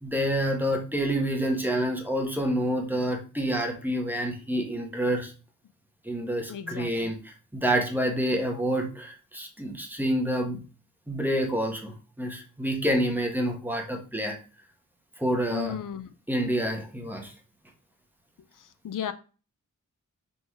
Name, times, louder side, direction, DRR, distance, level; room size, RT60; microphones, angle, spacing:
voice 1, 0.0-5.3 6.0-10.6 11.1-14.4 15.2-15.7 16.3-17.3, right 1 dB, 5° right, 1.4 m, -28 dB
voice 2, 6.5-7.1 15.5-16.1 18.6-19.1, left 9 dB, 80° left, 0.6 m, -35 dB
6.1 x 3.9 x 4.8 m
wide cardioid pair, 175°, 32 cm